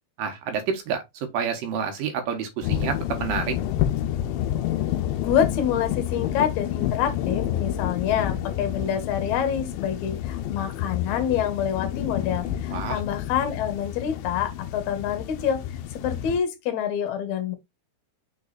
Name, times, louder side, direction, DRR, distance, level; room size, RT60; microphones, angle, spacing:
voice 1, 0.2-1.0 1.3-3.5 12.7-13.0, right 7 dB, 70° right, 3.0 m, -28 dB
sound 1, 2.6-16.4, left 11 dB, 80° left, 2.3 m, -29 dB
voice 2, 5.2-15.6 15.9-17.5, left 8 dB, 60° left, 2.4 m, -27 dB
6.3 x 4.0 x 4.0 m
omnidirectional pair, 4.2 m